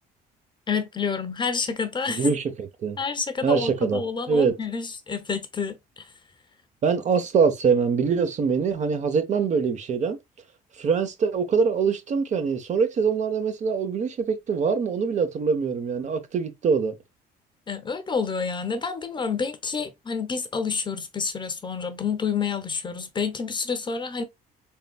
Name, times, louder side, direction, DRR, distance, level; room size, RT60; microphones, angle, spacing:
voice 1, 0.7-2.3 3.0-6.1 17.7-24.2, left 5 dB, 25° left, 0.8 m, -29 dB
voice 2, 2.1-3.0 3.4-4.0 4.3-4.6 6.8-10.2 10.8-16.9, right 5 dB, 45° right, 0.8 m, -23 dB
4.1 x 3.8 x 2.3 m
cardioid pair, 110°, 17 cm